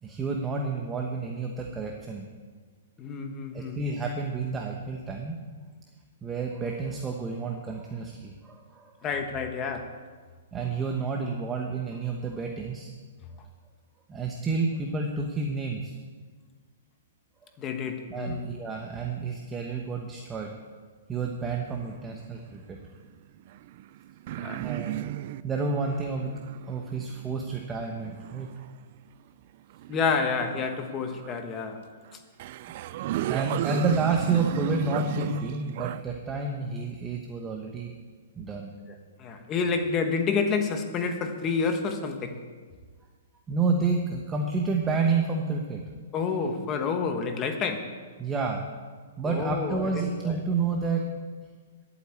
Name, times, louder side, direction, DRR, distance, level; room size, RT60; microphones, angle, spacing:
voice 1, 0.0-2.3 3.5-5.4 6.2-8.9 10.5-12.9 14.1-15.9 18.1-20.5 21.1-22.8 24.5-25.1 25.4-26.4 26.7-28.5 33.3-37.9 38.4-38.7 43.5-45.8 48.2-48.6 49.2-51.1, right 4 dB, 15° right, 1 dB, 1.0 m, -30 dB
voice 2, 3.0-3.8 9.0-10.0 17.6-18.5 24.4-24.7 29.9-31.8 39.2-42.4 46.1-48.0 49.2-50.4, left 5 dB, 20° left, 6 dB, 1.1 m, -29 dB
sound 1, 21.7-22.6 23.4-28.8 29.7-31.5 32.1-32.2 32.4-36.0, right 14 dB, 45° right, 0.4 m, -35 dB
11.5 x 8.3 x 8.4 m, 1.5 s
hypercardioid pair, 150°, 0 cm